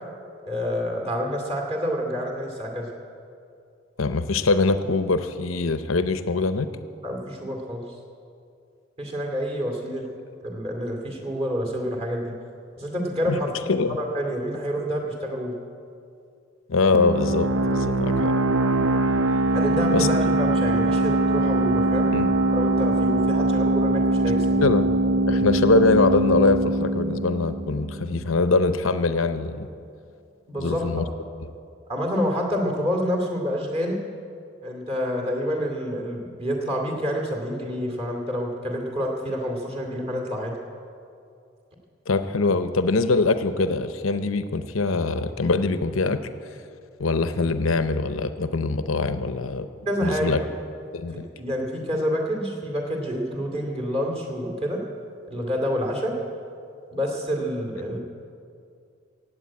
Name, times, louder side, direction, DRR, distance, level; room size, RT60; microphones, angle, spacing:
voice 1, 0.5-2.9 7.0-7.8 9.0-10.0 10.4-12.3 12.8-13.5 13.9-15.5 19.5-22.1 22.5-24.7 30.5-31.1 31.9-34.0 34.6-40.5 49.9-50.5 51.4-54.8 55.3-56.1 56.9-58.0, equal, 30° right, 1 dB, 2.4 m, -28 dB
voice 2, 4.0-6.7 13.3-13.4 13.7-14.0 16.7-18.3 19.9-20.1 22.1-22.3 24.6-24.9 25.3-29.7 30.6-31.0 31.4-31.5 42.1-46.2 47.0-49.7 50.0-50.4 50.9-51.3, left 3 dB, 80° left, 10 dB, 0.7 m, -23 dB
sound 1, 16.9-28.3, right 2 dB, 75° right, 0.7 m, -22 dB
16.5 x 8.7 x 8.5 m, 2.4 s
head